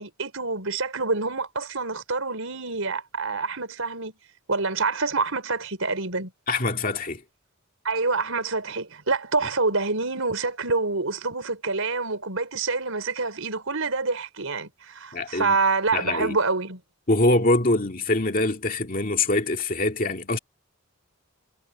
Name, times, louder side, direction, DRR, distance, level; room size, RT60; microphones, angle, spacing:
voice 1, 0.0-4.2 4.5-6.3 7.8-16.8, right 3 dB, 80° right, 4.7 m, -27 dB
voice 2, 6.5-7.2 15.1-15.6 15.9-16.4 17.1-20.4, left 2 dB, 40° left, 2.3 m, -24 dB
head